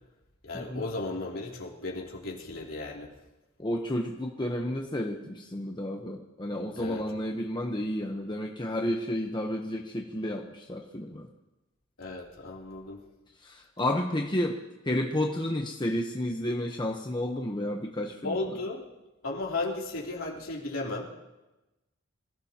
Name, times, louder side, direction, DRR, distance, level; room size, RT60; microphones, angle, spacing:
voice 1, 0.4-3.1 6.8-7.0 12.0-13.0 18.2-18.8 19.2-21.0, left 2 dB, 90° left, -3 dB, 3.3 m, -35 dB
voice 2, 3.6-11.3 13.4-14.6 14.8-18.4, left 1 dB, 20° left, 1 dB, 1.0 m, -31 dB
26.0 x 16.0 x 3.0 m, 1.0 s
head